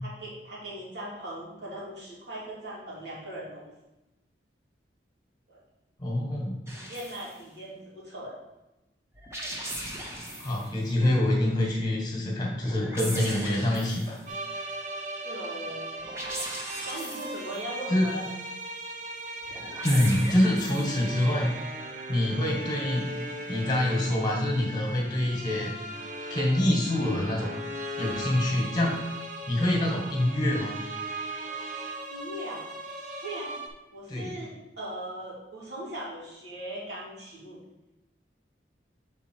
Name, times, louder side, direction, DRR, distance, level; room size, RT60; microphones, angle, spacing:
voice 1, 0.0-3.7 5.5-5.6 6.7-8.4 15.2-15.9 16.8-18.3 32.1-32.7 33.2-33.6 33.9-37.6, right 1 dB, 80° right, -5 dB, 2.7 m, -39 dB
voice 2, 6.0-6.7 10.4-14.2 14.5-14.6 17.9-18.1 19.8-21.5 22.1-23.1 23.5-25.7 26.3-27.5 28.0-29.0 29.5-30.7 34.1-34.3, left 1 dB, 25° left, -1 dB, 1.7 m, -26 dB
sound 1, 6.7-7.3 9.1-10.7 12.6-14.3 16.0-17.6 19.4-21.0, right 1 dB, 15° right, 1.0 m, -38 dB
sound 2, 14.3-33.7, right 1 dB, 45° right, 0.9 m, -38 dB
7.5 x 4.2 x 4.6 m, 0.97 s
head